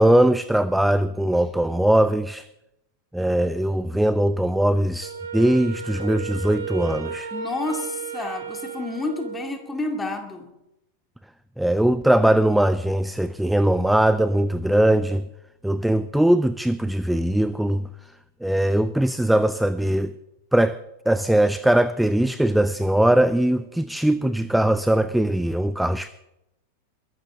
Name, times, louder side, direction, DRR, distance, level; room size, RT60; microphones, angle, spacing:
voice 1, 0.0-2.5 3.1-7.3 11.6-15.2 15.6-17.9 18.4-20.1 20.5-20.8 21.1-26.1, right 1 dB, ahead, 15 dB, 0.4 m, -20 dB
Wind instrument woodwind instrument, 5.0-9.7, right 6 dB, 70° right, 2.0 m, -34 dB
voice 2, 7.3-10.5, left 2 dB, 15° left, 4 dB, 2.4 m, -30 dB
21.5 x 12.5 x 3.6 m, 0.90 s
figure-of-eight pair, 90°, 0 cm